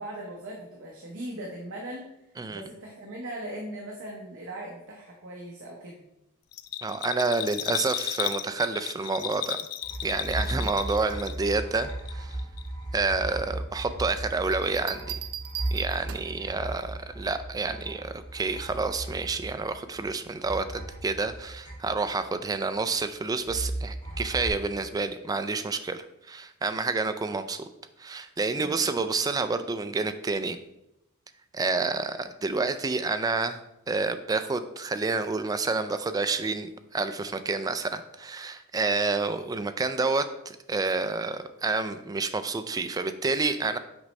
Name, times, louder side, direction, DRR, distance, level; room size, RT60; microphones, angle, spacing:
voice 1, 0.0-2.1 2.5-6.0 10.4-10.7 28.6-29.0, right 1 dB, 60° right, -1 dB, 0.9 m, -39 dB
Bell, 6.5-11.6 11.9-12.7 13.0-13.1, left 13 dB, 70° left, 0.4 m, -34 dB
voice 2, 6.8-9.6 10.0-12.4 12.9-15.1 15.7-27.7 28.0-30.6 31.5-33.6 33.9-43.8, right 3 dB, 15° right, 10 dB, 0.3 m, -29 dB
sound 1, 9.8-20.1 20.4-22.3 23.5-24.5, right 1 dB, 20° left, 1.8 m, -36 dB
Bell 2, 14.5-16.5 18.1-18.4, right 10 dB, 90° right, 0.5 m, -39 dB
6.1 x 5.1 x 3.2 m, 0.86 s
head